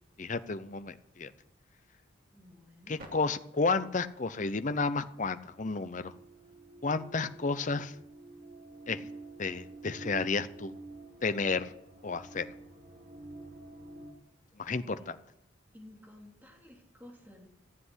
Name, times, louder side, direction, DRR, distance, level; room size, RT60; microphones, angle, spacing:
voice 1, 0.2-1.3 2.9-6.1 6.8-7.9 8.9-9.0 9.4-10.7 11.2-11.7 12.0-12.5 14.6-15.2, left 4 dB, 40° left, 12 dB, 0.7 m, -32 dB
voice 2, 2.3-3.0 14.5-15.1 15.7-17.5, left 1 dB, 10° right, -1 dB, 3.1 m, -54 dB
sound 1, 3.0-3.1 4.9-14.1, right 2 dB, 50° right, 2.5 m, -49 dB
14.5 x 7.8 x 9.7 m, 0.80 s
head